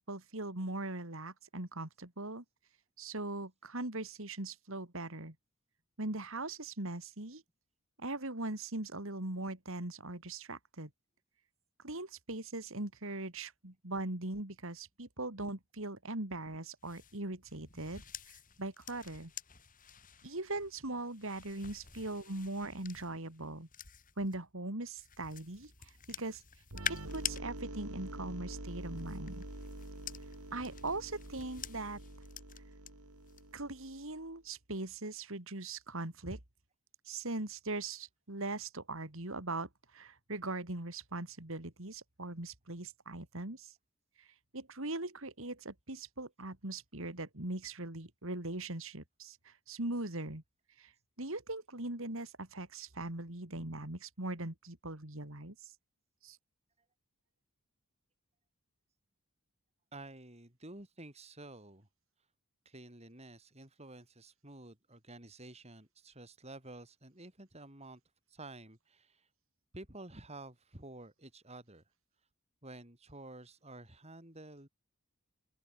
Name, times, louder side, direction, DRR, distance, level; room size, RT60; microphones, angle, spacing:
voice 1, 0.0-2.4 3.0-5.3 6.0-7.4 8.0-10.9 11.8-19.3 20.2-23.7 24.2-26.4 26.9-29.4 30.5-32.0 33.5-36.4 37.0-43.7 44.2-50.4 50.8-50.9 51.2-55.7 56.2-56.4, right 2 dB, 60° right, 3.2 m, -40 dB
sound 1, 16.8-24.4 24.9-27.4 28.7-32.9 33.3-33.6, left 8 dB, 40° left, 6.8 m, -47 dB
sound 2, 26.7-34.3, right 1 dB, 80° right, 4.8 m, -46 dB
voice 2, 59.9-61.9 62.6-68.0 68.3-69.3 69.7-71.8 72.6-74.7, right 2 dB, 30° right, 4.9 m, -51 dB
open air
head